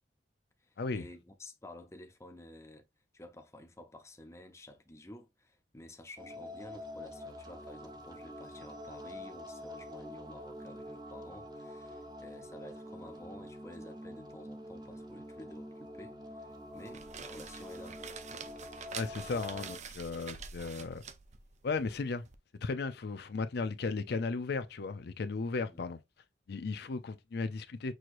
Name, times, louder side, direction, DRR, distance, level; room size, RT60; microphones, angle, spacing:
voice 1, 0.6-2.8 3.1-18.0 25.7-25.8, left 1 dB, 15° left, 0.7 m, -51 dB
sound 1, 6.2-19.8, left 1 dB, 25° right, 0.8 m, -46 dB
sound 2, 16.7-22.4, right 6 dB, 40° right, 0.5 m, -47 dB
voice 2, 18.9-21.0 21.6-22.2 22.6-26.0 26.5-27.9, left 4 dB, 65° left, 0.5 m, -35 dB
6.2 x 3.0 x 2.5 m
head